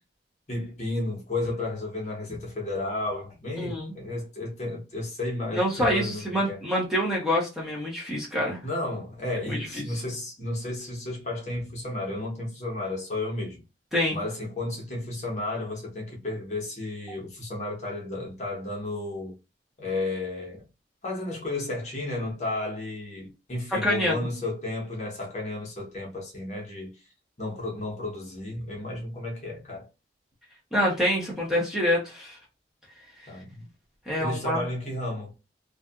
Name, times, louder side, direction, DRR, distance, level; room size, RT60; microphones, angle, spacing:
voice 1, 0.5-6.6 8.6-13.6 14.1-19.4 19.8-20.6 21.0-27.1 27.4-29.9 33.3-33.7 34.2-35.3, left 2 dB, 40° left, 0.9 m, -33 dB
voice 2, 3.6-3.9 5.5-8.6 9.5-9.8 13.9-14.2 23.7-24.2 30.7-32.4 33.2-33.3 34.1-34.6, equal, 5° right, 0.8 m, -26 dB
2.7 x 2.4 x 2.3 m
head